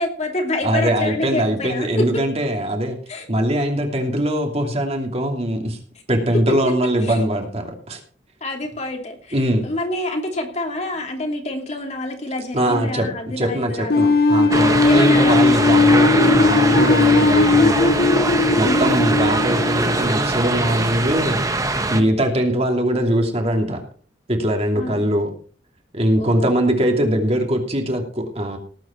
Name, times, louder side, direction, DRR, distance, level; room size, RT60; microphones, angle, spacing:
voice 1, 0.0-2.1 3.1-3.2 7.0-7.3 8.4-14.1 14.8-15.5 18.6-18.9 24.7-25.1 26.2-26.5, left 1 dB, 40° left, 2 dB, 2.9 m, -27 dB
voice 2, 0.6-3.0 3.3-5.8 6.1-8.0 9.3-9.7 12.5-13.1 13.4-17.9 18.5-21.5 21.9-23.8 24.3-25.3 25.9-28.6, right 1 dB, 35° right, 3 dB, 2.8 m, -21 dB
Trumpet, 13.8-21.5, equal, 75° left, 4.8 m, -39 dB
sound 1, 13.9-20.8, left 3 dB, 60° left, 1.3 m, -17 dB
sound 2, 14.5-22.0, right 2 dB, 20° right, 1.4 m, -22 dB
18.5 x 8.7 x 4.5 m, 0.42 s
head